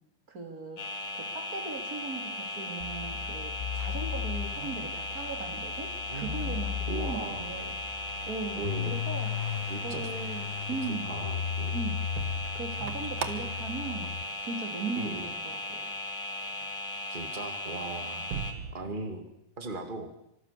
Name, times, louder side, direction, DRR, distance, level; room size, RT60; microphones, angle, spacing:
voice 1, 0.3-7.8 8.3-11.2 11.7-12.0 12.5-14.1 14.4-15.9, right 4 dB, 25° right, 4 dB, 2.8 m, -38 dB
sound 1, 0.8-18.5, left 1 dB, 40° left, 2.6 m, -37 dB
sound 2, 2.8-14.2, left 9 dB, 75° left, 3.3 m, -36 dB
voice 2, 4.5-4.9 6.1-6.6 6.9-7.6 8.6-9.0 9.7-10.1 10.9-11.8 15.0-15.3 17.1-18.3 18.7-19.2 19.6-20.1, right 3 dB, 65° right, 6 dB, 0.5 m, -38 dB
sound 3, 6.1-15.1 15.5-16.0 16.5-16.7 17.1-18.7, right 7 dB, 85° right, 1.3 m, -44 dB
26.0 x 25.5 x 6.9 m, 0.81 s
omnidirectional pair, 5.2 m